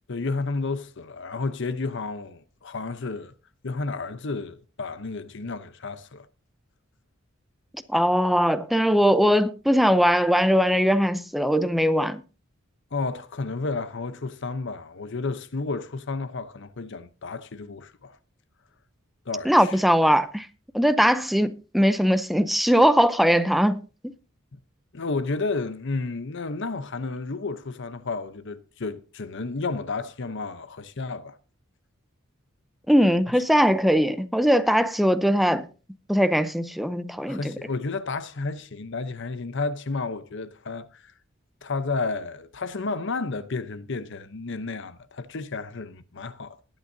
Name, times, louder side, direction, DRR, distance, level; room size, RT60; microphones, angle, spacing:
voice 1, 0.1-3.3 3.6-6.3 12.9-18.2 19.3-19.8 24.9-31.4 33.3-33.4 37.3-41.1 41.6-46.6, left 3 dB, 60° left, 0.8 m, -31 dB
voice 2, 7.9-12.2 19.5-20.5 20.7-23.8 32.9-35.7 36.1-37.4, equal, ahead, 0.6 m, -20 dB
20.5 x 9.0 x 2.7 m
head